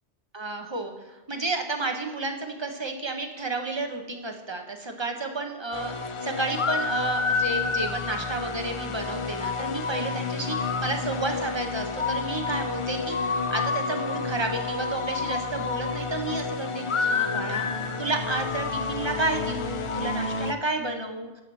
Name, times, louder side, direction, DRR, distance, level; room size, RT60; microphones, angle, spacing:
voice 1, 0.3-0.9 1.3-21.3, right 2 dB, 25° right, 4 dB, 1.1 m, -31 dB
sound 1, 5.7-20.5, left 4 dB, 45° left, 0.4 m, -29 dB
12.5 x 6.1 x 7.0 m, 1.1 s
omnidirectional pair, 1.2 m